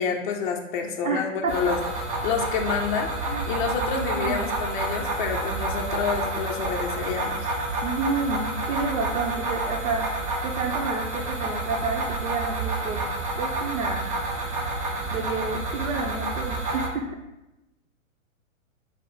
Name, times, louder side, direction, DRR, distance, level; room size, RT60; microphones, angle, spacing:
voice 1, 0.0-1.8 2.2-3.1 3.5-7.5, left 6 dB, 40° left, 2 dB, 0.5 m, -28 dB
voice 2, 1.0-1.7 3.3-3.4 4.0-4.4 7.8-13.0 13.4-14.1 15.1-17.2, right 4 dB, 75° right, 0 dB, 0.7 m, -30 dB
sound 1, 1.5-16.9, right 2 dB, 40° right, 0.7 m, -29 dB
4.5 x 2.0 x 4.4 m, 0.95 s
hypercardioid pair, 125°, 41 cm